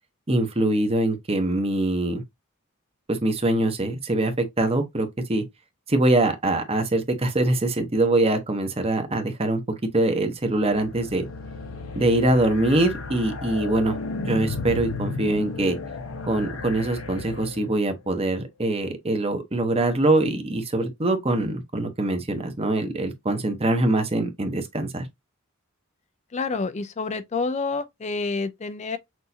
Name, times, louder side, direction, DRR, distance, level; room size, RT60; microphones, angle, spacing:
voice 1, 0.3-2.2 3.1-5.4 5.9-11.3 11.9-14.0 14.2-15.8 16.3-25.1, right 2 dB, 30° right, 1.0 m, -23 dB
sound 1, 10.5-17.9, left 3 dB, 85° left, 1.0 m, -34 dB
voice 2, 26.3-29.0, left 4 dB, 35° left, 0.4 m, -28 dB
6.2 x 2.6 x 2.7 m
head